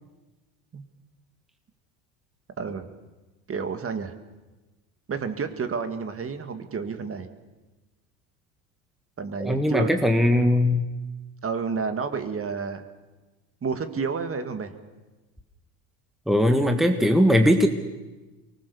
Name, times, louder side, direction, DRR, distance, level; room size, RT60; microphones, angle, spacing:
voice 1, 2.6-2.9 3.5-4.2 5.1-7.3 9.2-9.9 11.4-12.8 13.6-14.8, right 5 dB, 25° right, 8 dB, 2.0 m, -30 dB
voice 2, 9.4-10.8 16.3-17.7, left 1 dB, ahead, 5 dB, 1.6 m, -20 dB
24.5 x 19.5 x 7.0 m, 1.2 s
supercardioid pair, 105°, 49 cm